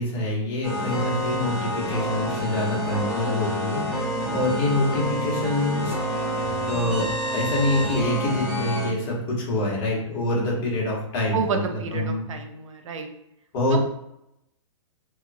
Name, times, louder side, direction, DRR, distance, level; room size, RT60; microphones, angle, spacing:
voice 1, 0.0-6.0 6.7-7.1 7.3-12.2 13.5-13.8, left 1 dB, 40° left, -3 dB, 1.2 m, -26 dB
sound 1, 0.6-8.9, equal, 5° right, 0.8 m, -28 dB
voice 2, 11.3-13.1 13.7-13.8, right 5 dB, 80° right, 4 dB, 0.6 m, -29 dB
2.9 x 2.3 x 2.5 m, 0.82 s
hypercardioid pair, 140°, 16 cm